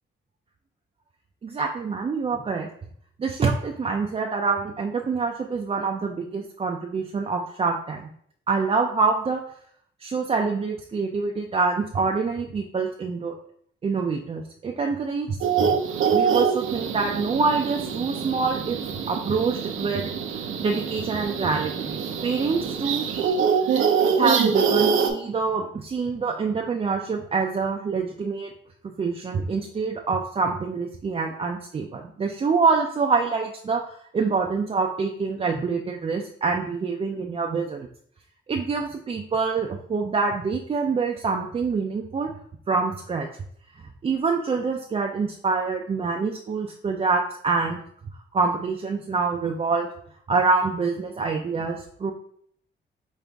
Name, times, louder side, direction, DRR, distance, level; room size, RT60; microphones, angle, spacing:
voice 1, 1.4-2.7 3.2-8.1 8.5-9.4 10.0-13.3 13.8-15.4 16.1-18.8 19.1-20.1 20.6-22.0 22.2-23.0 24.2-28.5 28.8-33.8 34.1-37.9 38.5-42.3 42.7-43.3 44.0-47.8 48.3-49.9 50.3-52.1, right 4 dB, 30° right, 1 dB, 0.4 m, -25 dB
sound 1, 15.4-25.1, right 6 dB, 80° right, 0.5 m, -25 dB
5.2 x 2.4 x 3.4 m, 0.64 s
wide cardioid pair, 120°, 20 cm